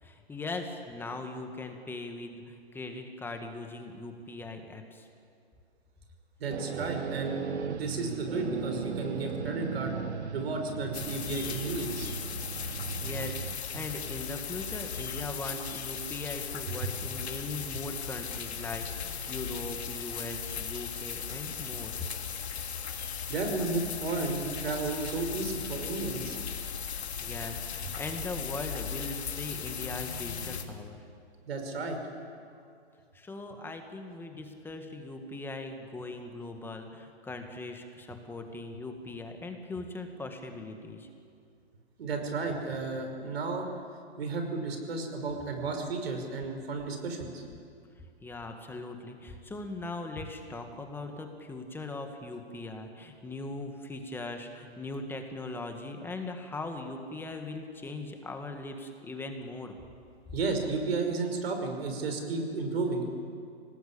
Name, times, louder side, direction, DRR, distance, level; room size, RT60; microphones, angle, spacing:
voice 1, 0.0-5.1 13.0-21.9 27.2-31.0 33.1-41.1 48.2-59.8, left 2 dB, 5° left, 5 dB, 1.8 m, -40 dB
voice 2, 6.4-10.0 10.3-12.1 16.8-16.9 23.3-26.4 31.5-32.3 42.0-43.7 44.2-47.4 60.3-63.0, right 3 dB, 65° right, 4 dB, 5.7 m, -33 dB
sound 1, 6.5-13.6, right 6 dB, 90° right, 1.1 m, -37 dB
sound 2, 10.9-30.6, left 7 dB, 75° left, 2.7 m, -37 dB
25.0 x 18.5 x 8.7 m, 2.4 s
hypercardioid pair, 145°, 33 cm